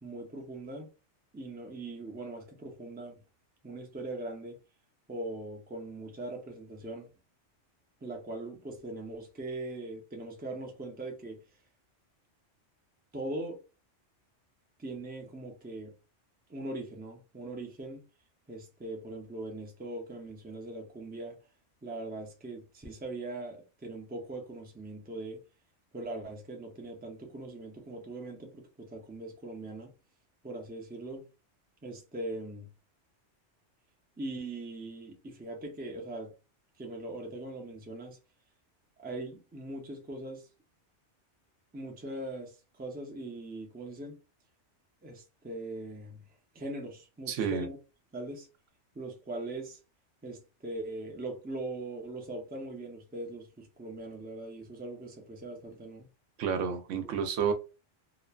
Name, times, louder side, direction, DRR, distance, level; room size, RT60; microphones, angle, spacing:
voice 1, 0.0-0.9 1.3-3.2 3.6-4.6 5.1-7.1 8.0-11.4 13.1-13.6 14.8-15.9 16.5-18.0 18.5-21.4 21.8-25.4 25.9-29.9 30.4-31.2 31.8-32.7 34.2-36.3 36.8-38.2 39.0-40.5 41.7-44.2 45.0-46.2 46.5-47.8 48.1-48.5 48.9-49.8 50.2-56.1, right 2 dB, 15° right, 0.3 m, -41 dB
voice 2, 47.3-47.7 56.4-57.5, right 7 dB, 90° right, 0.9 m, -30 dB
2.9 x 2.2 x 2.3 m
omnidirectional pair, 1.2 m